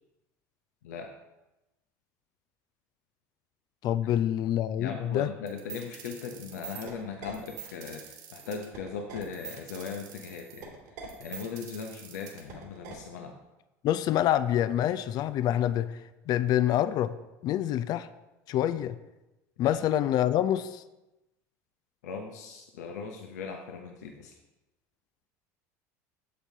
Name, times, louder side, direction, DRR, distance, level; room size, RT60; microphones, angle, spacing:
voice 1, 0.8-1.1 4.0-4.1 4.8-10.7 11.2-13.4 19.6-19.8 22.0-24.4, left 5 dB, 85° left, 3 dB, 0.7 m, -39 dB
voice 2, 3.8-5.3 13.8-15.9 16.3-17.2 17.4-18.1 18.5-19.0 19.6-20.8, left 11 dB, 50° left, 14 dB, 0.4 m, -26 dB
sound 1, 5.5-12.9, right 8 dB, 75° right, 2.6 m, -44 dB
8.3 x 7.3 x 2.8 m, 0.99 s
hypercardioid pair, 85°, 9 cm